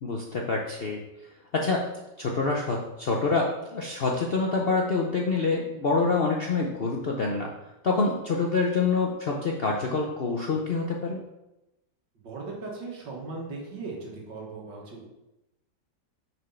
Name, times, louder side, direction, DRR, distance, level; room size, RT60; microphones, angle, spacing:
voice 1, 0.0-1.0 1.5-1.9 2.2-7.5 7.8-11.2, left 3 dB, 55° left, -1 dB, 0.6 m, -26 dB
voice 2, 12.2-15.1, right 3 dB, 85° right, -1 dB, 2.2 m, -38 dB
6.4 x 4.5 x 5.6 m, 0.95 s
omnidirectional pair, 1.9 m